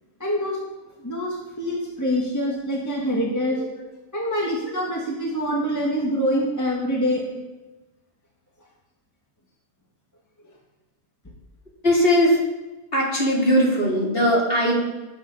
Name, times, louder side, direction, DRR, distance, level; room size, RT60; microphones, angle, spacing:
voice 1, 0.2-0.6 1.0-3.6 4.1-7.4, equal, 10° left, -3 dB, 1.8 m, -25 dB
voice 2, 11.8-12.4 12.9-14.8, equal, 40° left, -4 dB, 3.7 m, -19 dB
18.0 x 7.4 x 5.6 m, 1.1 s
omnidirectional pair, 1.5 m